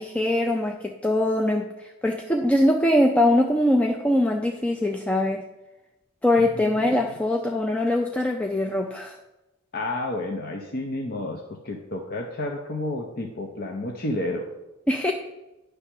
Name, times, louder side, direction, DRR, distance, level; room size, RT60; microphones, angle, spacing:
voice 1, 0.0-5.4 6.2-9.2 14.9-15.1, left 1 dB, 5° left, 2 dB, 0.3 m, -22 dB
voice 2, 9.7-14.5, left 2 dB, 45° left, 1 dB, 0.7 m, -31 dB
9.7 x 3.3 x 6.1 m, 1.0 s
head